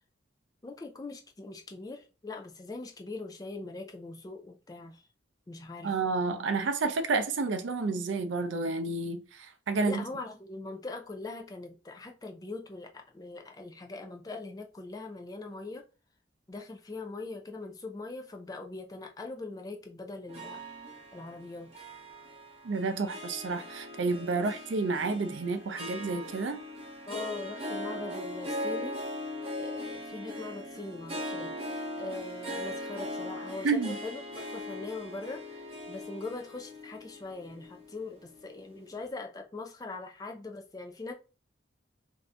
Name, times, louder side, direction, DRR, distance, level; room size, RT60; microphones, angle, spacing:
voice 1, 0.6-5.0 5.5-5.9 9.7-15.8 16.5-20.6 21.1-21.7 24.3-24.5 27.1-29.0 29.6-41.1, left 3 dB, 20° left, 0.4 m, -41 dB
voice 2, 5.8-10.0 22.6-26.6 33.6-34.0, right 3 dB, 80° right, 0.5 m, -30 dB
Harp, 20.3-38.7, left 1 dB, 30° right, 0.8 m, -40 dB
2.7 x 2.5 x 3.2 m
head